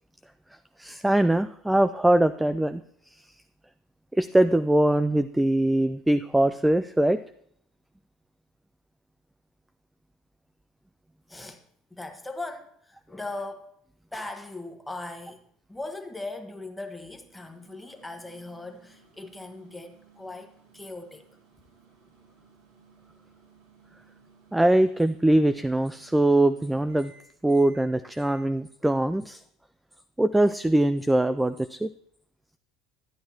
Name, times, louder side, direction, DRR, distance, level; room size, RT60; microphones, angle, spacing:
voice 1, 0.8-2.8 3.2-3.3 4.1-7.2 24.5-27.1 27.4-29.4 30.2-31.9, right 1 dB, 5° right, 11 dB, 0.3 m, -22 dB
voice 2, 11.3-11.6 11.9-13.7 14.1-15.4 15.7-21.3, left 2 dB, 10° left, 6 dB, 1.2 m, -39 dB
Microwave oven, 16.9-28.4, right 5 dB, 75° right, 3.0 m, -59 dB
11.0 x 10.0 x 2.9 m, 0.69 s
hypercardioid pair, 70°, 0 cm